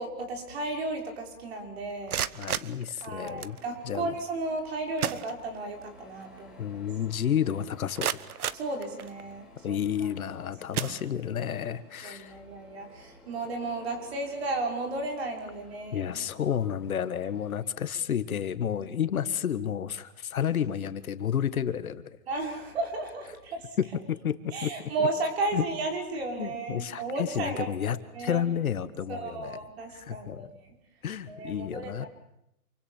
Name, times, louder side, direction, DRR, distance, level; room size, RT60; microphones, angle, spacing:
voice 1, 0.0-2.2 3.0-6.8 8.5-10.1 12.0-16.1 22.3-23.6 24.5-27.7 28.1-28.5 29.1-30.8 31.3-32.0, right 2 dB, 40° right, 3 dB, 5.8 m, -34 dB
sound 1, 1.9-3.6 4.6-4.7 5.0-5.9 6.2-6.3 6.9-7.0 7.5-9.4 10.1-10.3 10.7-11.6, right 9 dB, 70° right, 1.3 m, -34 dB
voice 2, 2.3-3.6 3.8-4.1 6.6-8.1 9.6-12.3 15.9-22.2 23.8-24.7 25.5-25.6 26.4-29.6 29.9-30.5 31.0-32.1, left 9 dB, 65° left, 12 dB, 1.8 m, -31 dB
Printer, 3.4-17.6, left 2 dB, ahead, 3.8 m, -56 dB
28.0 x 24.5 x 7.3 m, 0.79 s
hypercardioid pair, 175°, 45 cm